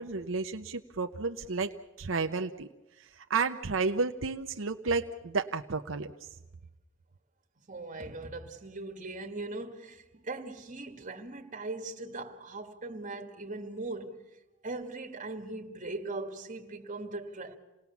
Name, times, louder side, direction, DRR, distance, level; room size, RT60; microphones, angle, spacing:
voice 1, 0.0-2.7 3.0-6.1, right 4 dB, 85° right, 0.8 m, -32 dB
voice 2, 7.7-14.2 14.6-17.6, right 2 dB, 40° right, 2.1 m, -40 dB
28.0 x 19.0 x 7.1 m
head